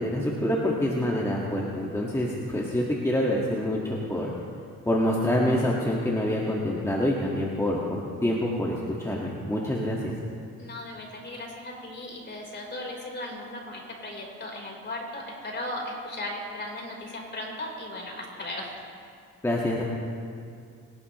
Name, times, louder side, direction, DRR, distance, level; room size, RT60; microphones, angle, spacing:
voice 1, 0.0-4.3 4.9-10.2 19.4-19.8, left 1 dB, 10° left, -4 dB, 1.8 m, -26 dB
voice 2, 10.6-18.7, left 1 dB, 35° left, -1 dB, 4.3 m, -37 dB
24.5 x 12.0 x 3.2 m, 2.3 s
cardioid pair, 90°, 30 cm